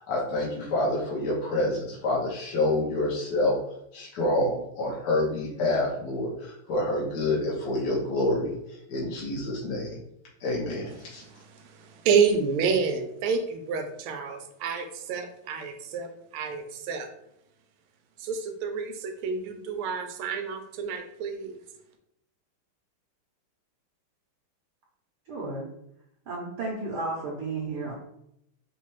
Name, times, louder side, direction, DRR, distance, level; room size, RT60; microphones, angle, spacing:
voice 1, 0.1-3.5 3.9-8.5 8.9-10.0 10.4-11.2, left 1 dB, 60° left, -4 dB, 1.3 m, -27 dB
voice 2, 11.0-17.1 18.2-21.6, right 5 dB, 80° right, 6 dB, 1.4 m, -29 dB
voice 3, 25.3-25.6 26.3-27.9, right 3 dB, 60° right, -3 dB, 1.1 m, -33 dB
4.1 x 2.2 x 3.1 m, 0.78 s
omnidirectional pair, 2.4 m